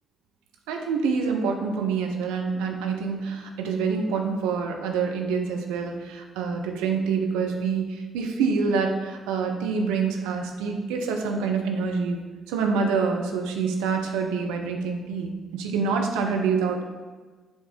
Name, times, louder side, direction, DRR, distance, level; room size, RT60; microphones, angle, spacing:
voice 1, 0.7-12.2 12.5-17.0, right 5 dB, 75° right, 3 dB, 0.6 m, -26 dB
7.3 x 3.3 x 4.9 m, 1.3 s
hypercardioid pair, 40°, 0 cm